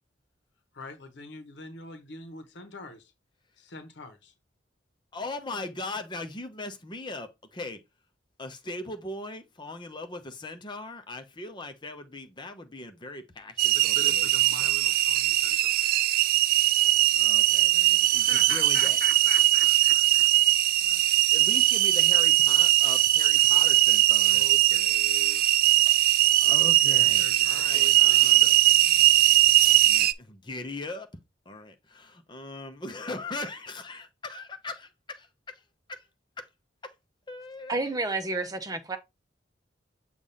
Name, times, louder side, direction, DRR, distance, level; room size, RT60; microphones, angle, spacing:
voice 1, 0.7-3.1 3.5-4.3 13.7-15.9 18.1-20.3 24.3-25.4 26.8-28.8, left 4 dB, 75° left, 0.9 m, -43 dB
voice 2, 5.1-7.8 8.4-14.3 17.1-19.0 20.8-21.0 21.3-25.5 26.4-28.5 29.8-31.1 31.5-35.6 35.9-36.1 36.4-36.5 36.8-36.9 37.3-38.0, left 2 dB, 25° left, 0.8 m, -39 dB
sound 1, 13.6-30.1, right 15 dB, 55° right, 0.3 m, -21 dB
voice 3, 37.7-39.0, right 3 dB, 20° right, 0.8 m, -30 dB
6.8 x 2.5 x 5.5 m
head